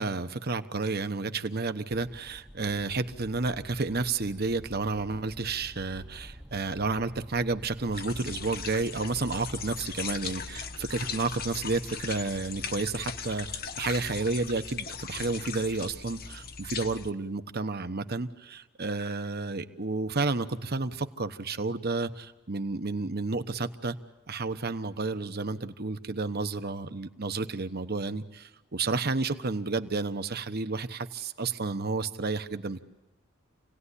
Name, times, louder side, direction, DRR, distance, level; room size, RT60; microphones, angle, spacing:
voice 1, 0.0-24.0 24.3-32.8, right 3 dB, 50° right, 10 dB, 1.1 m, -31 dB
sound 1, 1.9-14.3, equal, 5° right, 0.9 m, -50 dB
sound 2, 7.9-17.1, left 6 dB, 45° left, 1.2 m, -38 dB
28.0 x 18.0 x 10.0 m, 1.0 s
head